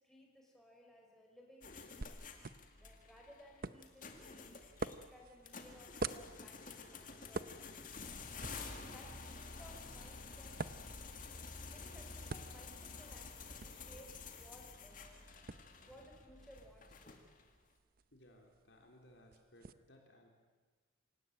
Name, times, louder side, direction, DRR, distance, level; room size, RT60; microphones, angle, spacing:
voice 1, 0.0-2.3 2.7-8.3 8.5-10.9 11.7-15.2 15.8-17.2, equal, ahead, -1 dB, 5.4 m, -61 dB
sound 1, 1.6-17.6, left 4 dB, 45° left, 2.2 m, -50 dB
sound 2, 2.0-19.7, right 3 dB, 50° right, 0.7 m, -50 dB
voice 2, 18.1-20.4, left 1 dB, 65° left, 2 dB, 3.9 m, -62 dB
27.0 x 17.5 x 8.9 m, 1.4 s
head